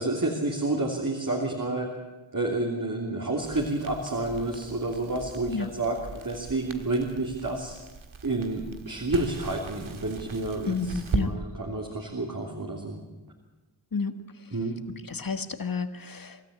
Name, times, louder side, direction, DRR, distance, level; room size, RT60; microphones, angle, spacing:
voice 1, 0.0-1.9 2.3-6.0 6.2-7.7 8.2-13.0 14.5-14.8, right 2 dB, 40° right, -1 dB, 3.1 m, -29 dB
Crackle, 3.4-11.3, right 4 dB, 80° right, 1.7 m, -38 dB
voice 2, 10.7-11.3 13.9-14.1 15.1-16.4, left 5 dB, 45° left, 10 dB, 1.5 m, -30 dB
24.5 x 13.5 x 8.8 m, 1.1 s
cardioid pair, 60°, 47 cm